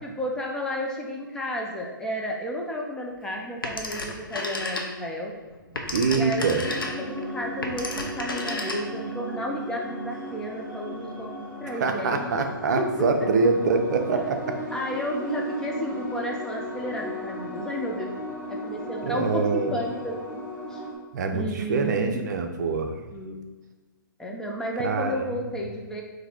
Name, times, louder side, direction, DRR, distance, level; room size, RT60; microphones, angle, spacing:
voice 1, 0.0-5.3 6.1-11.3 11.6-12.3 12.8-13.1 14.1-14.3 14.7-18.1 18.5-20.9 21.3-22.3 23.1-23.5 24.2-26.0, equal, 5° left, -2 dB, 0.4 m, -32 dB
Telephone, 3.6-5.2 5.5-9.1, left 2 dB, 85° left, 0.7 m, -32 dB
voice 2, 5.9-6.6 11.7-14.4 19.0-19.7 21.1-23.0 24.8-25.3, right 4 dB, 55° right, 5 dB, 0.5 m, -24 dB
sound 1, 6.6-21.0, equal, 10° right, 0.8 m, -36 dB
3.9 x 2.6 x 4.3 m, 1.3 s
hypercardioid pair, 130°, 11 cm